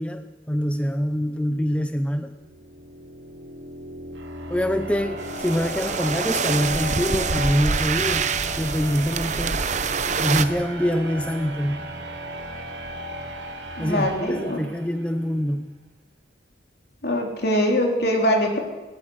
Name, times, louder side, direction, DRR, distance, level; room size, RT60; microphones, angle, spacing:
voice 1, 0.0-2.3 4.5-8.3 8.6-9.6 10.2-11.8 13.8-15.7, equal, 5° left, 8 dB, 0.7 m, -25 dB
sound 1, 2.3-15.2, right 1 dB, 75° right, 3.2 m, -35 dB
sound 2, 5.2-10.4, right 5 dB, 40° right, 0.8 m, -26 dB
voice 2, 13.8-14.7 17.0-18.6, equal, 60° left, 1 dB, 3.7 m, -22 dB
20.5 x 19.5 x 6.5 m, 1.2 s
head